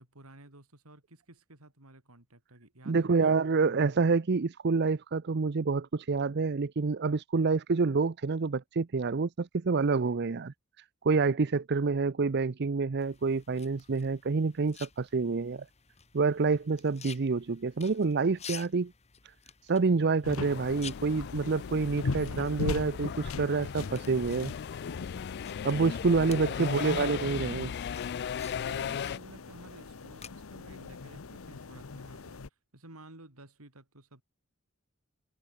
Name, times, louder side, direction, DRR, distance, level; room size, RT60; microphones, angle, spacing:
voice 1, 0.0-3.2 3.5-3.8 26.2-26.3 26.6-27.0 28.6-34.2, right 1 dB, 80° right, 4.2 m, -53 dB
voice 2, 2.9-10.5 11.0-15.6 16.1-18.9 19.6-24.5 25.6-27.7, right 4 dB, 50° right, 0.6 m, -27 dB
sound 1, 13.0-30.3, left 8 dB, 30° left, 1.7 m, -52 dB
sound 2, 20.2-32.5, left 3 dB, 65° left, 0.8 m, -40 dB
sound 3, 20.4-29.2, left 8 dB, 50° left, 0.3 m, -37 dB
head